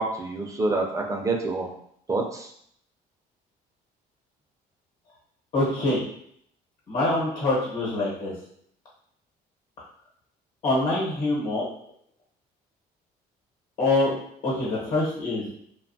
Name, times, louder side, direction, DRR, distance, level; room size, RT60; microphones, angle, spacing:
voice 1, 0.0-1.7 2.1-2.5, right 3 dB, 20° right, 1 dB, 0.4 m, -27 dB
voice 2, 5.5-6.0 6.9-8.3 10.6-11.7 13.8-14.1 14.4-15.6, left 2 dB, 55° left, -5 dB, 1.1 m, -25 dB
2.7 x 2.3 x 2.6 m, 0.68 s
cardioid pair, 110°, 17 cm